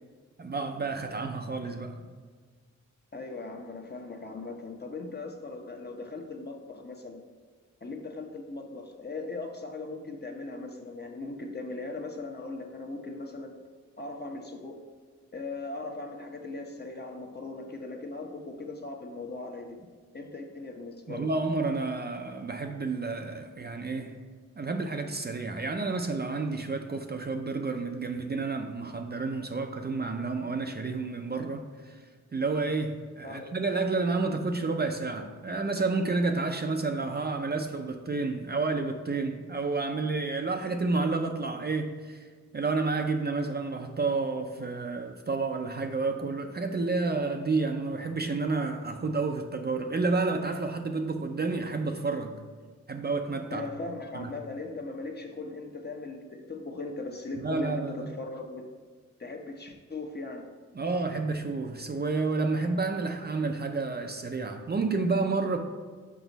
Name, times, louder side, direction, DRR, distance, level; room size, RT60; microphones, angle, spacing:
voice 1, 0.4-2.0 21.1-24.2 24.6-32.0 32.3-42.2 42.5-52.4 52.9-53.7 54.1-54.3 57.4-58.1 60.7-65.6, right 3 dB, 35° right, 5 dB, 0.5 m, -30 dB
voice 2, 3.1-7.2 7.8-13.5 14.0-14.8 15.3-19.8 20.1-21.3 33.2-33.5 53.5-58.7 59.2-60.5, left 3 dB, 35° left, 3 dB, 0.8 m, -39 dB
6.1 x 5.0 x 4.0 m, 1.6 s
wide cardioid pair, 100°, 30 cm